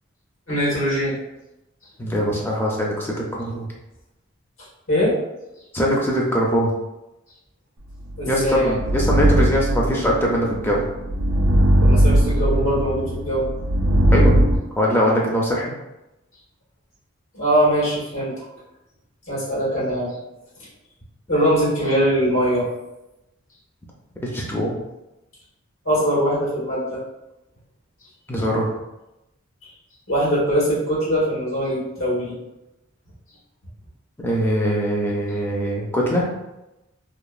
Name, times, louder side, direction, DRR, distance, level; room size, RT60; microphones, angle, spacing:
voice 1, 0.5-1.2 4.9-5.1 8.2-8.8 11.8-13.4 17.3-18.3 19.3-20.1 21.3-22.7 25.8-27.0 30.1-32.3, equal, 85° left, -8 dB, 1.4 m, -21 dB
voice 2, 2.0-3.7 5.7-6.7 8.3-10.8 14.1-15.7 24.2-24.7 28.3-28.7 34.2-36.3, equal, 10° left, -3 dB, 0.4 m, -22 dB
sound 1, 8.1-14.6, equal, 90° right, 0.4 m, -19 dB
3.0 x 2.1 x 2.3 m, 0.95 s
head